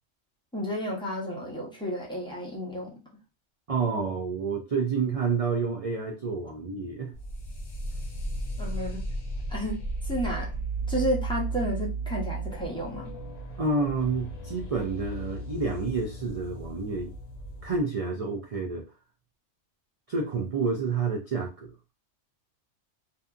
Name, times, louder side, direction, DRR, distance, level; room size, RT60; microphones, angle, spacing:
voice 1, 0.5-3.0 8.6-9.0 9.5-10.5 10.9-13.1, equal, 5° left, -4 dB, 0.6 m, -32 dB
voice 2, 3.7-7.1 13.6-17.1 17.6-18.9 20.1-21.9, right 4 dB, 70° right, 1 dB, 0.3 m, -29 dB
sound 1, 7.1-17.8, right 2 dB, 50° left, 0.5 m, -35 dB
2.6 x 2.5 x 2.3 m, 0.29 s
omnidirectional pair, 1.2 m